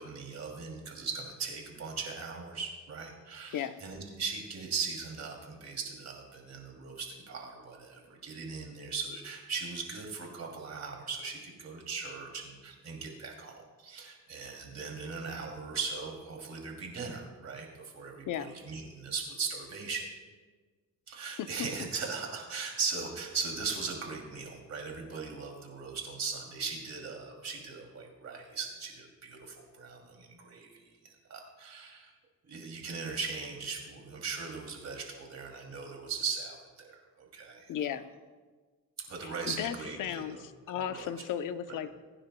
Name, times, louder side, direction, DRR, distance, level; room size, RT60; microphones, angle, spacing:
voice 1, 0.0-20.0 21.1-30.8 31.3-32.1 32.5-37.7 39.1-40.4 40.8-41.1 41.7-41.8, right 5 dB, 60° right, 1 dB, 2.8 m, -39 dB
voice 2, 37.7-38.1 39.2-41.9, left 9 dB, 85° left, 11 dB, 0.7 m, -35 dB
22.5 x 9.9 x 2.2 m, 1.4 s
cardioid pair, 85°, 30 cm